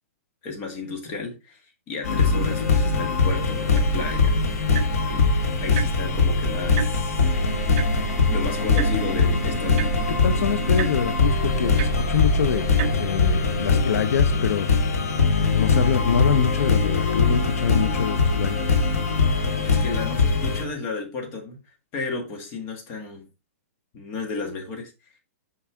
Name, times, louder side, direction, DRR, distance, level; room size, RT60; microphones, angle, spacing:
voice 1, 0.4-5.3 5.6-7.3 8.3-9.9 19.5-21.6 21.9-23.3 23.9-24.9, left 4 dB, 25° left, 1.7 m, -33 dB
sound 1, 2.0-20.6, left 4 dB, 90° left, 1.9 m, -22 dB
sound 2, 3.8-13.7, right 9 dB, 35° right, 0.6 m, -33 dB
voice 2, 10.2-14.7 15.5-18.7, left 7 dB, 70° left, 0.6 m, -25 dB
5.9 x 5.4 x 3.5 m
hypercardioid pair, 160°, 8 cm